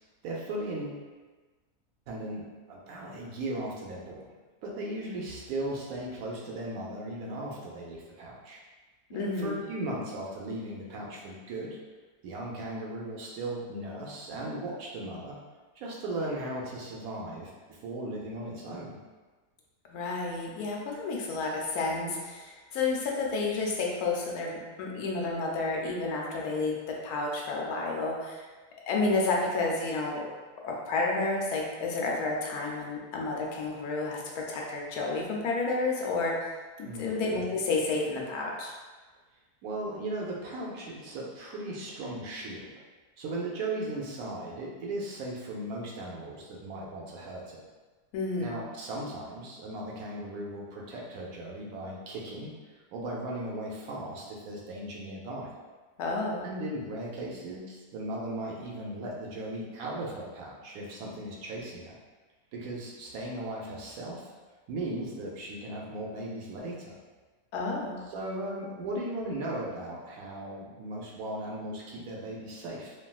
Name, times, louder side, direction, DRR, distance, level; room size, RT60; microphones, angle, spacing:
voice 1, 0.2-1.0 2.1-4.3 4.6-8.6 9.1-11.8 12.2-15.4 15.8-19.0 36.8-37.2 39.6-42.7 43.2-47.6 48.4-52.5 52.9-55.5 56.4-62.0 62.5-64.3 64.7-67.0 68.1-72.9, right 1 dB, 75° right, -3 dB, 1.0 m, -37 dB
voice 2, 9.1-9.6 19.9-28.4 28.9-30.2 30.6-38.8 48.1-48.5 56.0-56.5 67.5-68.0, left 3 dB, 80° left, -1 dB, 1.1 m, -31 dB
3.3 x 2.3 x 2.3 m, 1.3 s
omnidirectional pair, 1.6 m